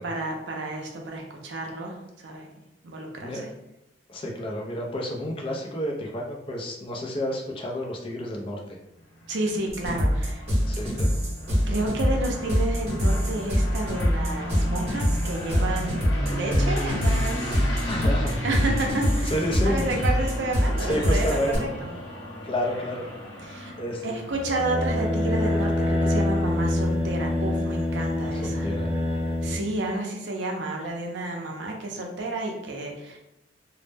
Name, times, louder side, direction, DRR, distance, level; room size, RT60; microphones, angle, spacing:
voice 1, 0.0-2.5 2.8-3.5 9.3-10.4 11.7-17.8 18.4-19.3 19.6-22.0 23.4-23.7 24.0-28.7 29.4-33.2, right 2 dB, 65° right, 1 dB, 0.5 m, -31 dB
voice 2, 4.1-8.6 10.6-11.2 17.9-18.3 19.3-19.9 20.7-21.7 22.4-23.1 23.8-24.2 28.2-28.9, left 1 dB, 30° left, -1 dB, 0.4 m, -30 dB
sound 1, 9.0-26.2, equal, 80° left, 0.8 m, -35 dB
sound 2, 9.7-21.6, equal, 35° right, 0.9 m, -24 dB
sound 3, 24.3-29.6, left 1 dB, 5° right, 0.7 m, -25 dB
2.1 x 2.0 x 3.2 m, 0.88 s
head